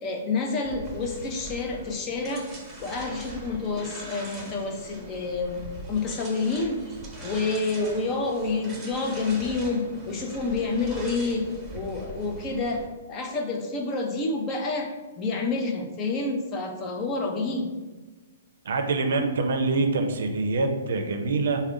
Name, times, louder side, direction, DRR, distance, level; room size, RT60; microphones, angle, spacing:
voice 1, 0.0-2.5 2.8-5.6 5.9-6.8 7.2-17.7, left 3 dB, 30° left, 2 dB, 0.5 m, -28 dB
sound 1, 0.6-12.9, right 1 dB, 15° right, 1.0 m, -41 dB
voice 2, 18.7-21.6, right 3 dB, 70° right, 5 dB, 0.4 m, -25 dB
3.5 x 2.2 x 3.6 m, 1.2 s
hypercardioid pair, 135°, 0 cm